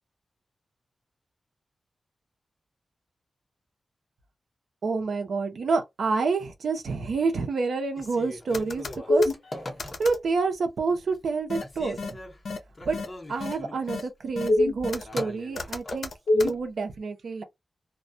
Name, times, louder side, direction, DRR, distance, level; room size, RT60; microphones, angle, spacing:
voice 1, 4.8-9.3 10.0-12.0 12.9-13.0 13.3-17.4, right 4 dB, 80° right, 0.6 m, -28 dB
Telephone, 7.9-10.4 10.8-11.3 11.6-16.6, left 1 dB, 35° left, 0.8 m, -41 dB
sound 1, 8.5-9.3 9.8-10.2 11.5-11.6 12.0-12.1 12.4-12.6 12.9-13.0 13.4-13.5 13.9-14.0 14.4-15.0 15.6-16.5, left 2 dB, 80° left, 0.5 m, -25 dB
2.2 x 2.1 x 2.6 m
wide cardioid pair, 125°, 0 cm